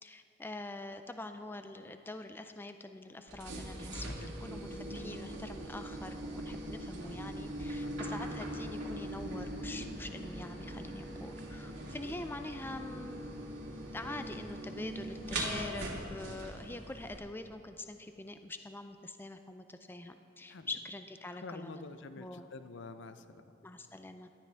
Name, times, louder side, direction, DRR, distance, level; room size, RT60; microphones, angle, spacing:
voice 1, 0.0-4.1 4.4-13.3 13.9-21.9 22.2-22.5 23.6-24.3, left 2 dB, 10° left, 8 dB, 0.4 m, -44 dB
sound 1, 3.3-17.2, right 1 dB, 65° right, 2.3 m, -41 dB
voice 2, 21.4-23.4, left 3 dB, 65° left, 10 dB, 0.6 m, -48 dB
18.0 x 12.0 x 3.4 m, 2.9 s
head